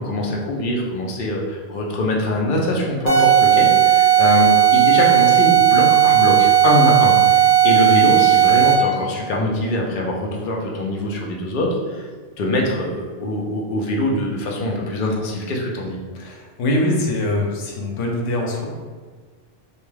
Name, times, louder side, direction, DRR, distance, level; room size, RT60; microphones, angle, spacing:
voice 1, 0.0-12.1 12.4-16.0, left 1 dB, 55° left, -1 dB, 0.6 m, -23 dB
sound 1, 3.1-9.0, right 10 dB, 45° right, 0.6 m, -14 dB
voice 2, 16.1-18.7, left 1 dB, 85° left, -1 dB, 0.9 m, -23 dB
2.4 x 2.2 x 3.2 m, 1.5 s
omnidirectional pair, 1.2 m